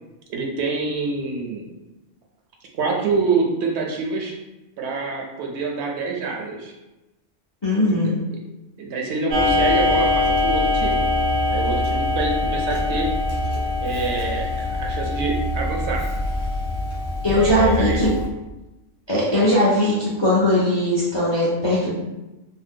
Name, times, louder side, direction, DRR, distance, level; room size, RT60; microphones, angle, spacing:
voice 1, 0.3-1.7 2.7-4.4 4.8-6.7 7.8-8.1 8.8-11.0 11.5-13.1 13.8-16.0 17.3-18.1 19.3-19.5, right 4 dB, 70° right, 0 dB, 0.8 m, -26 dB
voice 2, 7.6-8.1 17.2-18.1 19.1-21.9, left 1 dB, 45° left, -6 dB, 0.3 m, -19 dB
Clock, 9.3-18.3, left 2 dB, 85° right, 1.3 m, -23 dB
2.7 x 2.1 x 3.5 m, 1.0 s
omnidirectional pair, 1.3 m